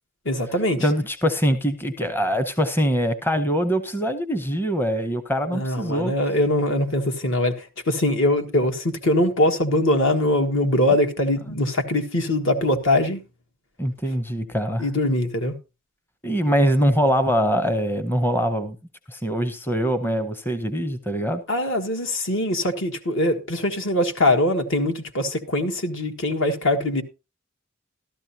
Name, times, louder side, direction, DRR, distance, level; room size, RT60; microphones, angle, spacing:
voice 1, 0.2-0.9 5.5-13.2 14.8-15.5 21.5-27.0, left 1 dB, 65° left, 1.6 m, -22 dB
voice 2, 0.8-6.1 13.8-14.8 16.2-18.8 19.1-21.4, equal, 10° left, 0.7 m, -23 dB
13.5 x 13.0 x 2.8 m
head